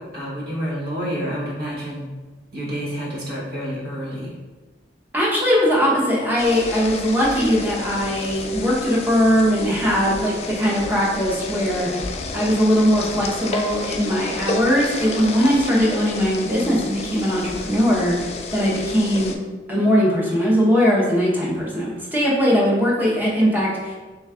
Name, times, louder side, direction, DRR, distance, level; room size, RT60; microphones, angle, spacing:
voice 1, 0.1-2.1 2.5-4.3, equal, 60° right, -5 dB, 1.2 m, -28 dB
voice 2, 5.1-12.0 12.3-19.4 19.7-24.0, equal, 10° right, -5 dB, 0.8 m, -20 dB
sound 1, 6.4-19.4, left 3 dB, 35° left, 0.3 m, -31 dB
3.2 x 3.1 x 3.5 m, 1.3 s
head